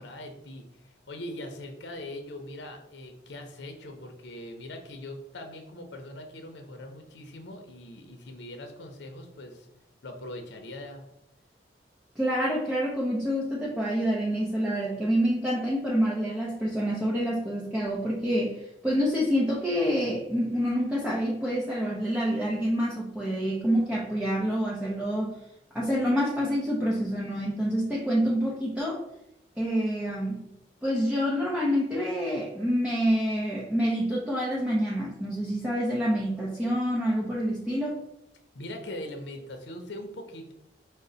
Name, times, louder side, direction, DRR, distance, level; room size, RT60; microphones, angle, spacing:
voice 1, 0.0-9.7 10.0-11.0 38.5-40.5, left 1 dB, 80° left, 4 dB, 0.6 m, -41 dB
voice 2, 12.2-25.4 25.7-29.0 29.6-30.5 30.8-38.0, equal, 5° right, -5 dB, 0.5 m, -27 dB
5.1 x 2.1 x 3.8 m, 0.83 s
head